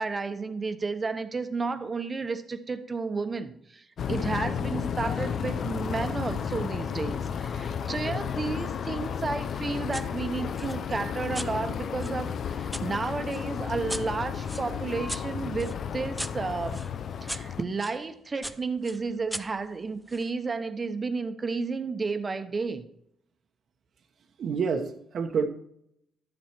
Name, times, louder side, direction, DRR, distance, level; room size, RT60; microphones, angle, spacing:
voice 1, 0.0-16.8 17.2-22.8, right 4 dB, 30° right, 1.1 m, -32 dB
sound 1, 4.0-17.6, left 7 dB, 60° left, 0.6 m, -32 dB
sound 2, 9.9-10.1 10.6-12.9 13.3-18.0 18.4-20.3, right 1 dB, 5° right, 0.6 m, -40 dB
voice 2, 24.4-25.5, right 5 dB, 60° right, 1.0 m, -29 dB
12.0 x 7.4 x 4.5 m
cardioid pair, 90°, 0 cm